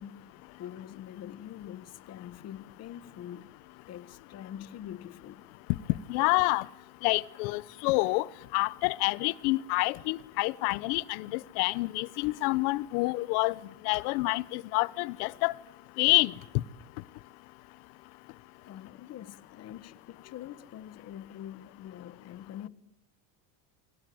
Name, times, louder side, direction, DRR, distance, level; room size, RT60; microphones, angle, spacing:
voice 1, 0.0-3.5 3.9-5.4 18.6-22.7, left 10 dB, 35° left, 1.3 m, -44 dB
voice 2, 6.1-6.6 7.0-8.2 8.5-13.5 13.8-15.5 16.0-16.3, left 23 dB, 75° left, 1.1 m, -27 dB
29.0 x 22.5 x 7.9 m
cardioid pair, 170°, 45 cm